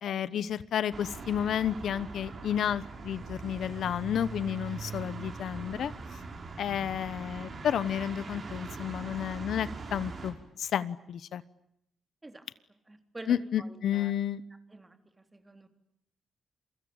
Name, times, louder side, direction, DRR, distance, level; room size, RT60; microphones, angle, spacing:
voice 1, 0.0-5.9 6.6-11.4 13.3-14.4, left 9 dB, 75° left, 16 dB, 1.0 m, -31 dB
sound 1, 0.9-10.3, right 4 dB, 45° right, 5.8 m, -41 dB
voice 2, 12.9-14.1 14.7-15.7, right 2 dB, 20° right, 7 dB, 3.7 m, -48 dB
28.5 x 24.0 x 8.8 m, 0.77 s
cardioid pair, 95°, 0 cm